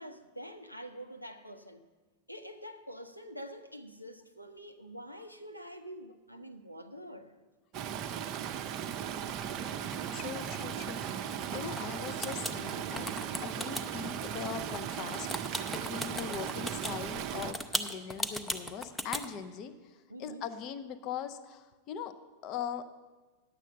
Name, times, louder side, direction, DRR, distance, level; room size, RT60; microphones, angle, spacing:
voice 1, 0.0-1.8 2.3-7.3 10.3-10.5 20.1-20.5, equal, 90° left, 0.6 m, -46 dB
Stream, 7.7-17.5, right 9 dB, 35° right, 0.5 m, -37 dB
sound 1, 9.3-11.8 12.1-16.9 17.4-19.3, equal, 5° left, 0.6 m, -37 dB
voice 2, 10.1-13.1 13.4-15.3 15.7-22.1 22.4-22.9, left 8 dB, 40° left, 0.6 m, -41 dB
9.8 x 7.4 x 6.5 m
figure-of-eight pair, 90°, 0 cm